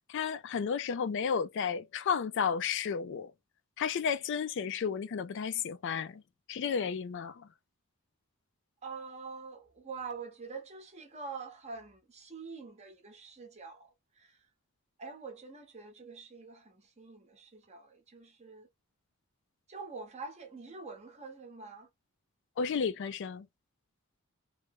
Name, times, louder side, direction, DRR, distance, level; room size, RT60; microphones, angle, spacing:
voice 1, 0.1-3.3 3.8-6.2 6.5-7.5 22.6-23.5, left 6 dB, 55° left, 0.3 m, -32 dB
voice 2, 8.8-14.5 15.0-18.7 19.7-21.9, right 4 dB, 30° right, 0.9 m, -45 dB
3.1 x 2.1 x 3.4 m
head